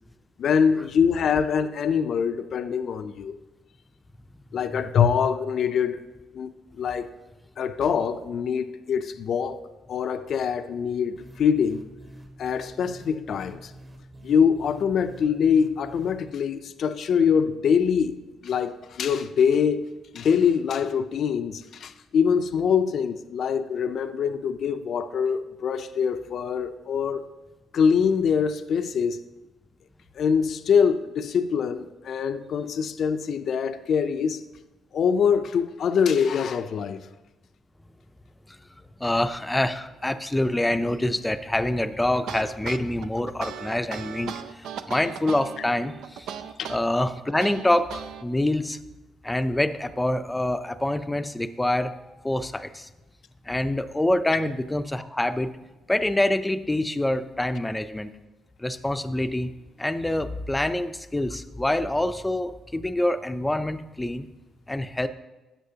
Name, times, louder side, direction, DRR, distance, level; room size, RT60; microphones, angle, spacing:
voice 1, 0.4-3.4 4.5-6.0 6.3-7.1 7.6-9.6 9.9-11.9 12.4-13.7 14.2-19.9 20.1-27.2 27.7-29.2 30.2-34.4 34.9-37.0 46.6-46.7, left 7 dB, 65° left, 10 dB, 0.5 m, -24 dB
sound 1, 11.2-16.3, right 1 dB, 30° right, 1.4 m, -47 dB
voice 2, 39.0-46.3 46.7-48.8 49.2-51.9 52.2-52.9 53.5-55.6 55.9-58.1 58.6-59.5 59.8-64.3 64.7-65.1, left 1 dB, 10° left, 11 dB, 0.5 m, -26 dB
sound 2, 42.1-48.2, right 8 dB, 85° right, 0.5 m, -37 dB
12.5 x 7.6 x 2.8 m, 1.1 s
cardioid pair, 90°, 0 cm